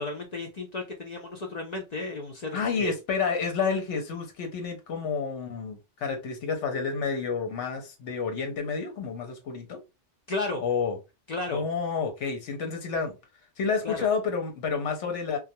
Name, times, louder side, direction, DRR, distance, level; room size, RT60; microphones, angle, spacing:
voice 1, 0.0-2.9 10.3-10.6 11.3-11.6 13.8-14.1, left 2 dB, 50° left, 0.5 m, -33 dB
voice 2, 2.5-9.8 10.6-11.0 11.5-13.2 13.6-15.4, left 5 dB, 75° left, 1.0 m, -29 dB
2.3 x 2.2 x 2.7 m
omnidirectional pair, 1.2 m